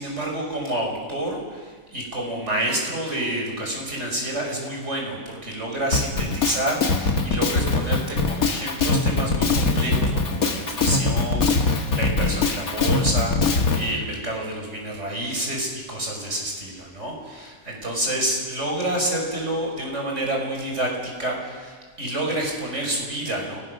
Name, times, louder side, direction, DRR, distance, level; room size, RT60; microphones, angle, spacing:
voice 1, 0.0-23.6, right 1 dB, 55° right, 0 dB, 6.0 m, -28 dB
Drum kit, 5.9-13.9, left 3 dB, 85° left, 2.1 m, -22 dB
29.0 x 19.0 x 6.6 m, 1.5 s
omnidirectional pair, 1.5 m